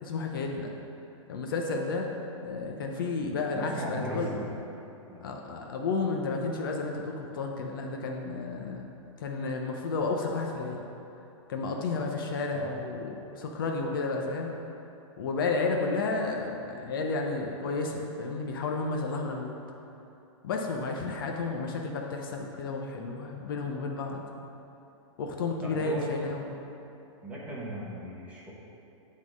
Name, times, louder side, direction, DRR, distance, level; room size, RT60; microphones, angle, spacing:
voice 1, 0.0-0.7 1.3-2.1 2.4-4.3 5.2-8.9 9.2-10.9 11.5-14.5 15.2-19.5 20.4-24.2 25.2-26.5, left 3 dB, 45° left, 1 dB, 0.6 m, -32 dB
voice 2, 3.5-4.5 5.1-5.3 12.5-12.7 25.6-26.1 27.2-28.5, equal, 10° right, -6 dB, 0.8 m, -37 dB
8.4 x 3.6 x 6.2 m, 2.9 s
supercardioid pair, 175°, 16 cm